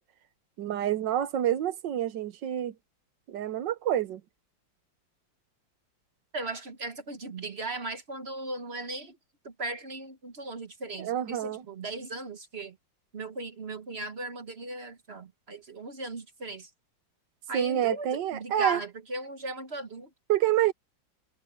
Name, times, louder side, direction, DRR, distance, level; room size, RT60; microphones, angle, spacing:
voice 1, 0.6-2.7 3.3-4.2 11.0-11.6 17.5-18.8 20.3-20.7, right 11 dB, 70° right, 1.5 m, -27 dB
voice 2, 6.3-9.2 9.4-12.8 13.1-16.7 17.5-20.1, right 2 dB, 40° right, 1.2 m, -37 dB
omnidirectional pair, 2.0 m